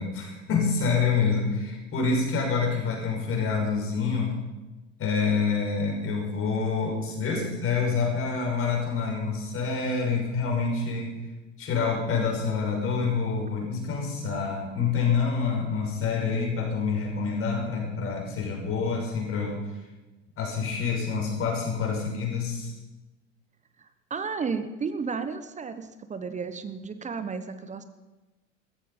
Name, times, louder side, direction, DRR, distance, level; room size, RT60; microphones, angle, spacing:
voice 1, 0.0-4.4 5.0-11.2 11.6-19.6 20.4-22.8, left 5 dB, 35° left, -1 dB, 5.9 m, -27 dB
voice 2, 23.8-27.8, right 5 dB, 20° right, 11 dB, 1.1 m, -33 dB
15.5 x 14.5 x 5.7 m, 1.1 s
figure-of-eight pair, 75°, 39 cm